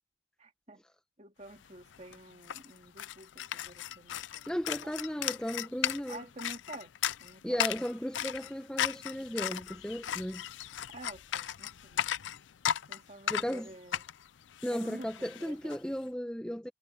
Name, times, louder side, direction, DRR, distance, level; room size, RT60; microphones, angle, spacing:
voice 1, 0.4-0.8 1.2-4.5 4.8-5.0 6.1-6.9 7.2-7.6 10.9-12.2 12.9-14.0 14.7-15.8, right 2 dB, 40° right, 2.9 m, -49 dB
sound 1, 1.6-1.7 1.9-15.8, left 10 dB, 85° left, 0.5 m, -36 dB
voice 2, 4.5-6.2 7.4-10.4 13.3-13.7 14.6-16.7, equal, 5° left, 1.1 m, -35 dB
head